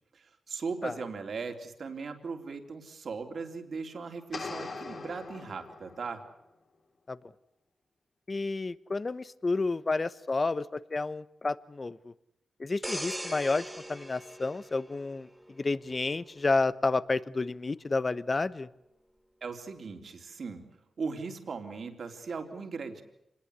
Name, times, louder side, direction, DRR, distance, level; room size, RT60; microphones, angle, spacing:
voice 1, 0.1-6.2 19.4-20.7 21.0-23.0, right 4 dB, 65° right, 5 dB, 3.5 m, -38 dB
sound 1, 4.3-6.2, left 3 dB, 60° left, 4.1 m, -41 dB
voice 2, 8.3-12.1 12.6-18.7, left 3 dB, 40° left, 16 dB, 1.0 m, -30 dB
sound 2, 12.8-15.5 16.0-16.2, equal, 10° right, 3.0 m, -40 dB
26.0 x 20.0 x 8.3 m, 0.82 s
cardioid pair, 70°, 0 cm